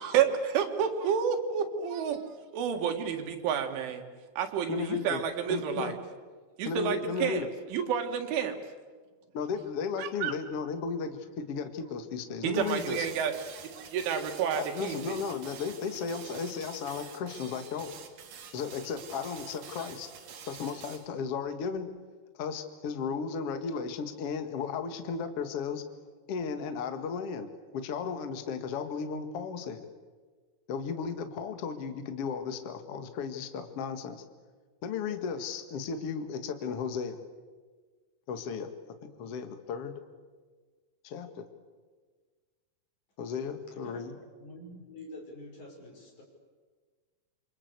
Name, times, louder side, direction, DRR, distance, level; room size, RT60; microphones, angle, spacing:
voice 1, 0.0-4.0 4.4-5.9 6.6-8.6 10.0-10.3 12.4-15.2, right 8 dB, 90° right, 5 dB, 4.5 m, -30 dB
voice 2, 4.7-5.2 5.5-5.9 6.6-7.5 9.3-13.1 14.6-17.9 18.5-20.1 20.4-21.9 22.4-25.8 26.3-29.8 30.7-34.2 34.8-37.2 38.3-38.7 39.0-40.0 41.0-41.5 43.2-44.1, left 6 dB, 55° left, 8 dB, 1.6 m, -35 dB
sound 1, 12.5-21.1, right 7 dB, 55° right, 3.1 m, -47 dB
voice 3, 43.7-46.2, left 1 dB, 40° left, 0 dB, 7.1 m, -47 dB
28.5 x 24.5 x 8.2 m, 1.5 s
omnidirectional pair, 5.3 m